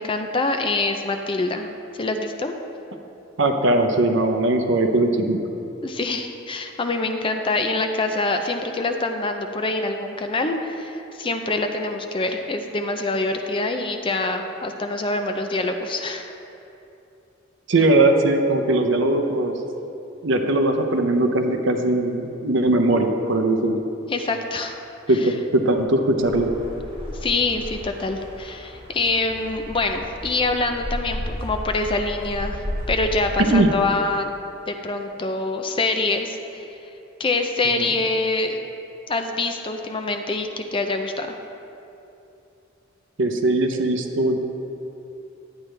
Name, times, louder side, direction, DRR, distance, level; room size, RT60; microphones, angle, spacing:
voice 1, 0.0-2.5 5.8-16.3 24.1-24.8 25.2-25.3 27.2-32.6 32.9-34.3 34.7-36.6 37.2-38.7 39.1-41.4, left 3 dB, 25° left, 5 dB, 0.5 m, -25 dB
voice 2, 3.4-5.4 17.7-19.5 20.2-23.8 25.1-26.5 33.4-33.7 37.8-37.9 43.2-44.4, right 2 dB, 60° right, 5 dB, 0.7 m, -20 dB
sound 1, 26.2-33.5, equal, 25° right, 1.4 m, -33 dB
10.5 x 8.9 x 3.3 m, 2.8 s
head